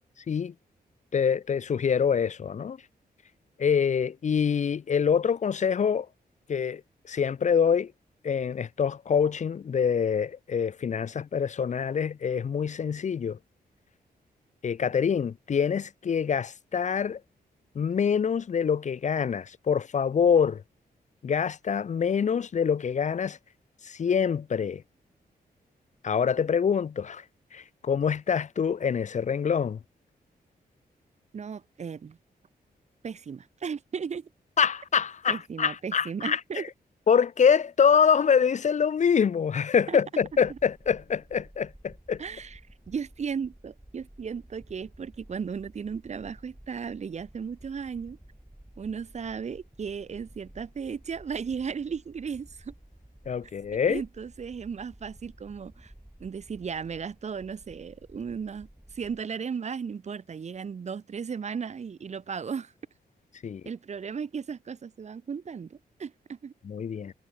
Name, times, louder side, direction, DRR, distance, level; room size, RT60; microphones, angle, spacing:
voice 1, 1.1-2.8 3.6-6.1 6.5-6.8 7.1-7.9 8.2-13.4 14.6-17.2 17.7-20.6 21.2-23.4 23.8-24.8 26.0-27.2 27.5-29.8 34.6-36.6 37.1-42.2 53.3-54.0 63.4-63.6 66.6-67.1, left 7 dB, 45° left, 0.9 m, -25 dB
voice 2, 31.3-32.2 33.0-34.3 35.3-36.6 39.9-40.0 40.5-40.6 42.2-42.6 42.9-48.2 48.8-52.7 53.9-55.9 56.2-62.7 63.6-66.5, right 6 dB, 45° right, 1.4 m, -35 dB
sound 1, 40.2-59.2, right 1 dB, 5° right, 6.2 m, -53 dB
wide cardioid pair, 170°, 16 cm